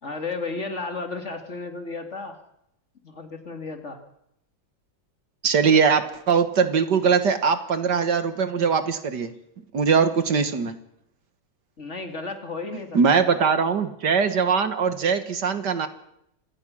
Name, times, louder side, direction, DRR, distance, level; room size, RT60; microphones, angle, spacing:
voice 1, 0.0-2.4 3.0-4.0 11.8-13.4, left 3 dB, 40° left, 6 dB, 2.5 m, -33 dB
voice 2, 5.4-9.3 9.7-10.8 12.9-15.9, right 6 dB, 65° right, 10 dB, 2.1 m, -21 dB
26.5 x 19.0 x 6.3 m, 0.77 s
omnidirectional pair, 2.0 m